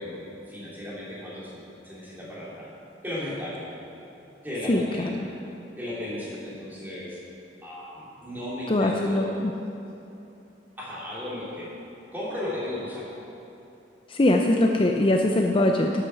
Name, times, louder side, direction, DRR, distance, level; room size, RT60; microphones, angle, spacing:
voice 1, 0.0-2.7 3.0-3.7 4.4-5.3 5.8-7.2 7.6-9.3 10.8-11.7 12.1-13.1, left 1 dB, 10° right, -8 dB, 3.1 m, -35 dB
voice 2, 4.7-5.2 8.7-9.5 14.1-16.0, left 1 dB, 30° left, 2 dB, 0.5 m, -22 dB
12.5 x 8.0 x 5.8 m, 2.9 s
head